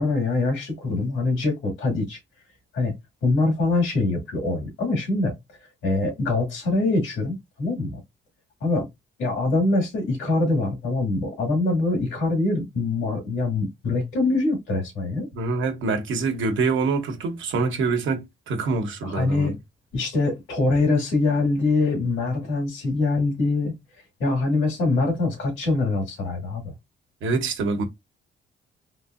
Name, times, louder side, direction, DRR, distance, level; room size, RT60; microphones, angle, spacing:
voice 1, 0.0-2.2 2.7-2.9 3.2-5.3 5.8-8.0 8.6-8.9 9.2-15.3 19.0-19.5 19.9-23.7 24.2-26.7, left 3 dB, 90° left, 2.0 m, -24 dB
voice 2, 15.3-19.6 27.2-27.8, right 4 dB, 75° right, 1.0 m, -25 dB
3.6 x 2.7 x 2.4 m
cardioid pair, 90°, 20 cm